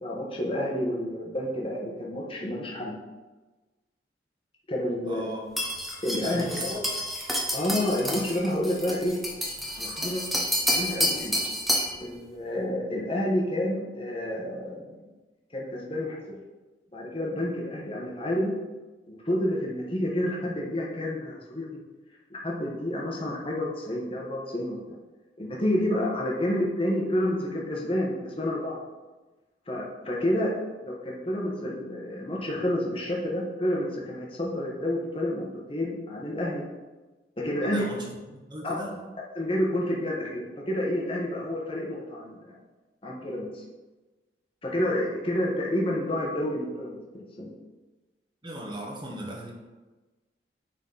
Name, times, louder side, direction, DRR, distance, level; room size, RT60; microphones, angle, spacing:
voice 1, 0.0-2.9 4.7-5.3 6.0-6.8 7.5-9.1 9.8-10.2 10.7-11.3 12.0-15.0 15.5-16.3 16.9-18.5 19.1-21.7 22.3-24.8 25.4-28.8 29.7-30.5 30.8-36.6 37.4-37.8 38.6-38.8 39.4-42.4 43.0-43.6 44.6-47.0 47.4-47.5, left 1 dB, 30° left, -3 dB, 1.3 m, -29 dB
voice 2, 5.0-5.4 6.1-6.7 37.6-39.0 48.4-49.5, right 1 dB, 25° right, -1 dB, 1.3 m, -38 dB
sound 1, 5.6-12.0, equal, ahead, 1.0 m, -29 dB
9.4 x 4.2 x 4.1 m, 1.2 s
head